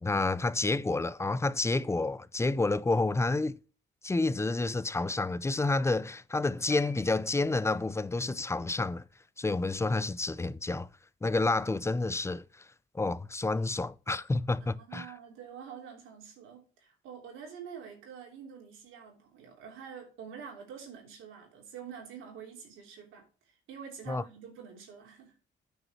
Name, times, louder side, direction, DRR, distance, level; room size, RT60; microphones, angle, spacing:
voice 1, 0.0-3.6 4.0-9.1 9.4-10.9 11.2-12.7 12.9-15.1 24.1-24.2, left 3 dB, 15° left, 0.5 m, -29 dB
sound 1, 6.7-7.9, left 5 dB, 45° left, 1.5 m, -48 dB
voice 2, 14.6-25.4, right 7 dB, 90° right, 3.3 m, -47 dB
9.1 x 5.0 x 4.5 m
cardioid pair, 90°, 20 cm